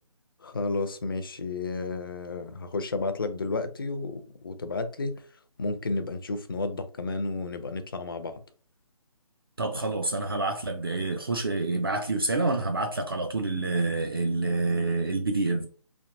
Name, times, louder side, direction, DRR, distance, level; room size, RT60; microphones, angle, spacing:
voice 1, 0.4-5.3 5.6-8.4, left 3 dB, 35° left, 0.4 m, -32 dB
voice 2, 9.6-15.7, right 2 dB, 40° right, 0.4 m, -27 dB
3.3 x 2.5 x 2.5 m
figure-of-eight pair, 155°, 20 cm